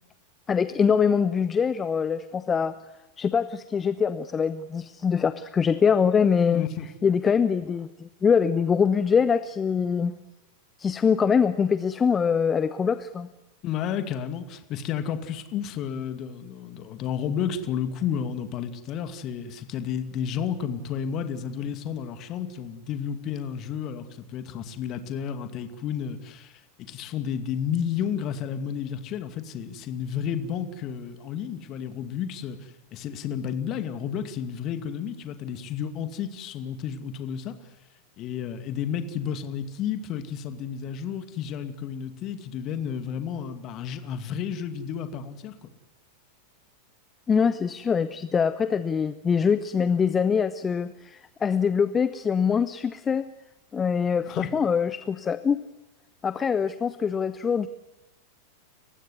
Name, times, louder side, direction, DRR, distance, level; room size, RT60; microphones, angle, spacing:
voice 1, 0.5-2.8 3.2-6.6 7.0-10.1 10.8-13.3 47.3-53.3 53.7-55.6 56.2-57.7, left 6 dB, 20° left, 14 dB, 0.8 m, -23 dB
voice 2, 6.5-6.9 13.6-26.6 26.9-37.6 38.2-45.5 54.3-54.5, left 8 dB, 35° left, 9 dB, 2.3 m, -31 dB
29.5 x 16.0 x 9.5 m, 0.95 s
figure-of-eight pair, 90°, 0 cm